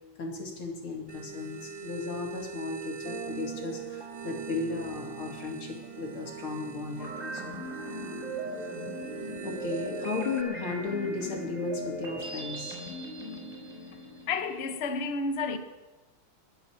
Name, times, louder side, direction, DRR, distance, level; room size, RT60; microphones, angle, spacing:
voice 1, 0.2-7.5 9.4-12.8, left 4 dB, 75° left, 3.2 m, -35 dB
sound 1, 1.1-10.4, right 5 dB, 45° right, 0.9 m, -44 dB
sound 2, 3.1-10.7, right 9 dB, 70° right, 1.6 m, -45 dB
sound 3, 7.0-14.9, right 2 dB, 20° right, 4.5 m, -38 dB
voice 2, 14.3-15.6, left 4 dB, 45° left, 0.8 m, -30 dB
21.0 x 7.0 x 7.3 m
omnidirectional pair, 2.3 m